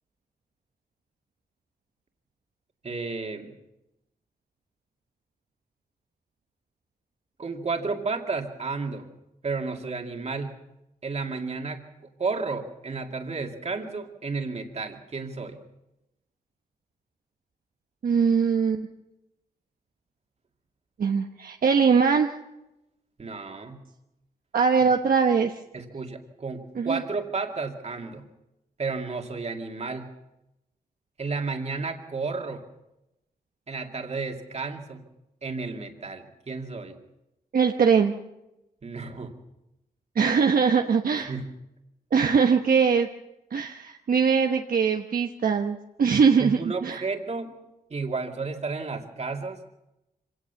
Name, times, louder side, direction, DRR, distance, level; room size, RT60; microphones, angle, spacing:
voice 1, 2.8-3.5 7.4-9.1 9.4-10.6 11.0-11.8 12.2-15.6 23.2-23.8 25.7-28.2 28.8-30.1 31.2-32.6 33.7-35.0 35.4-37.0 38.8-39.3 41.2-41.5 46.4-47.5 47.9-49.6, right 4 dB, 45° right, 4 dB, 2.5 m, -32 dB
voice 2, 18.0-18.9 21.0-22.3 24.5-25.6 26.8-27.0 37.5-38.1 40.1-41.3 42.1-43.1 43.5-47.0, right 6 dB, 65° right, 4 dB, 1.1 m, -22 dB
25.5 x 17.5 x 7.1 m, 0.91 s
wide cardioid pair, 100°, 16 cm